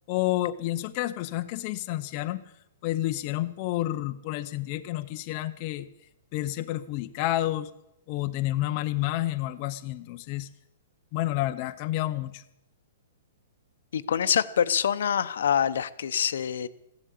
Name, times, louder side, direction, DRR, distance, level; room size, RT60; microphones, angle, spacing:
voice 1, 0.1-2.4 2.8-5.9 6.3-7.7 8.1-10.5 11.1-12.4, left 15 dB, 30° left, 8 dB, 0.6 m, -29 dB
voice 2, 13.9-16.7, left 8 dB, 70° left, 11 dB, 0.9 m, -25 dB
15.5 x 11.5 x 8.4 m, 0.82 s
hypercardioid pair, 170°, 0 cm